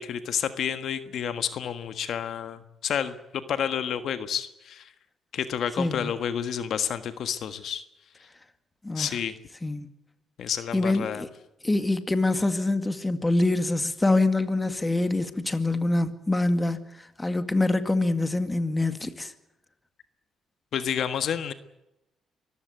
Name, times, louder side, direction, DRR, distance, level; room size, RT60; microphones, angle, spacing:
voice 1, 0.0-4.9 5.3-7.8 8.9-9.3 10.4-11.2 20.7-21.5, left 8 dB, 70° left, 1.5 m, -30 dB
voice 2, 5.8-6.1 8.8-9.2 9.6-9.9 10.7-11.3 11.6-19.3, left 2 dB, 15° left, 2.1 m, -25 dB
24.0 x 15.0 x 9.5 m
cardioid pair, 90°, 0 cm